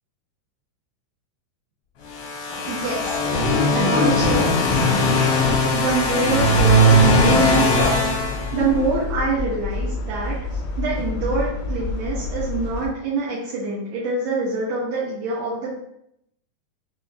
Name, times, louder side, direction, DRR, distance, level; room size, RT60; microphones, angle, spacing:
sound 1, 2.1-9.0, equal, 75° left, 2.7 m, -19 dB
sound 2, 2.5-7.0 9.4-9.5, left 3 dB, 50° left, 1.1 m, -28 dB
voice 1, 2.7-3.2 3.7-4.5 5.0-5.2 5.7-10.4 10.8-15.7, right 3 dB, 80° right, -9 dB, 3.1 m, -25 dB
sound 3, 5.8-12.9, left 3 dB, 90° left, 1.9 m, -29 dB
6.7 x 2.9 x 2.3 m, 0.74 s
omnidirectional pair, 4.9 m